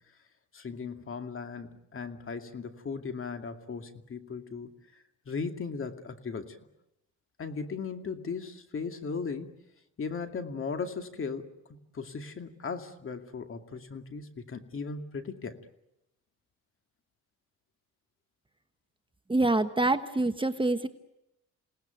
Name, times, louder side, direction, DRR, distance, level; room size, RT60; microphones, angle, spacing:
voice 1, 0.5-4.7 5.3-6.6 7.4-9.5 10.0-11.5 11.9-15.6, left 5 dB, 45° left, 6 dB, 2.4 m, -37 dB
voice 2, 19.3-20.9, right 2 dB, 15° right, 9 dB, 1.2 m, -26 dB
28.0 x 19.0 x 9.2 m, 0.88 s
cardioid pair, 90°, 30 cm